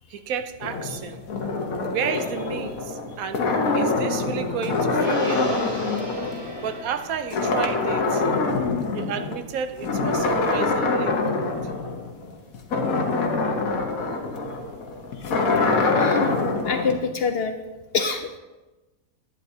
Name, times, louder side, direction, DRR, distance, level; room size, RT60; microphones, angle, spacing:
voice 1, 0.1-1.2 1.9-3.4 3.7-5.8 6.6-8.3 8.9-11.6, right 7 dB, 85° right, 9 dB, 1.1 m, -32 dB
sound 1, 0.6-7.0 7.3-9.4 9.8-16.9, left 3 dB, 85° left, 1.4 m, -25 dB
Gong, 4.9-11.5 11.9-12.0, equal, 45° right, 2.3 m, -42 dB
voice 2, 16.0-16.3 16.7-17.5 17.9-18.4, left 5 dB, 65° left, 7 dB, 0.6 m, -25 dB
11.0 x 9.3 x 2.7 m, 1.1 s
omnidirectional pair, 1.4 m